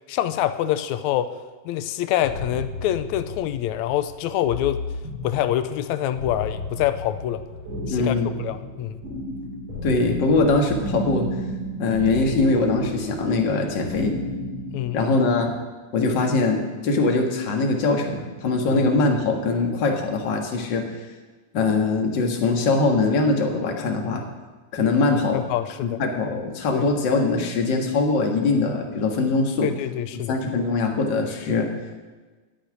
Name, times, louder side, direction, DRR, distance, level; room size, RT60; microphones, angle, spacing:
voice 1, 0.1-1.4 1.7-4.9 5.2-7.4 7.9-8.2 8.4-9.0 14.7-15.1 18.5-18.9 25.3-26.0 26.7-26.9 29.6-30.4, left 12 dB, 80° left, 11 dB, 1.9 m, -26 dB
sound 1, 2.2-15.6, equal, 70° right, 5.3 m, -33 dB
voice 2, 7.9-8.3 9.8-11.3 11.8-14.2 14.9-15.5 15.9-20.8 21.5-24.2 24.7-25.4 26.0-29.7 30.3-31.7, left 3 dB, 45° left, 2 dB, 1.9 m, -22 dB
9.9 x 9.0 x 9.7 m, 1.3 s
omnidirectional pair, 3.4 m